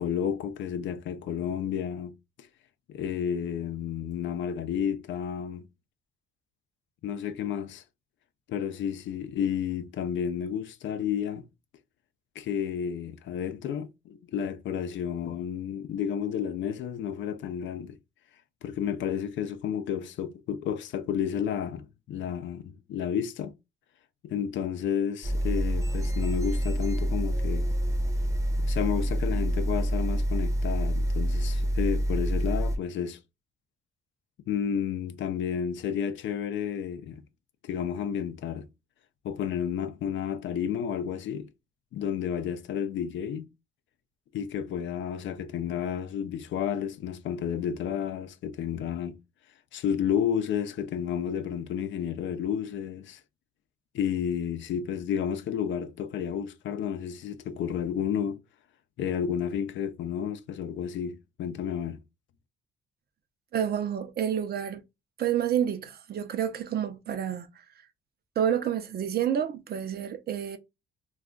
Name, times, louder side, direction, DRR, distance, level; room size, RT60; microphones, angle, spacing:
voice 1, 0.0-2.1 2.9-5.6 7.0-7.8 8.5-11.5 12.4-18.0 18.6-23.5 24.2-27.7 28.6-33.2 34.5-37.2 37.6-38.7 39.2-41.5 41.9-43.5 44.3-49.2 49.7-53.2 53.9-58.4 59.0-62.0, left 8 dB, 70° left, 0.5 m, -31 dB
sound 1, 25.2-32.8, equal, 15° right, 0.7 m, -27 dB
voice 2, 63.5-64.8 65.2-67.5 68.4-70.6, right 9 dB, 50° right, 0.6 m, -29 dB
2.3 x 2.2 x 3.6 m
cardioid pair, 90°, 20 cm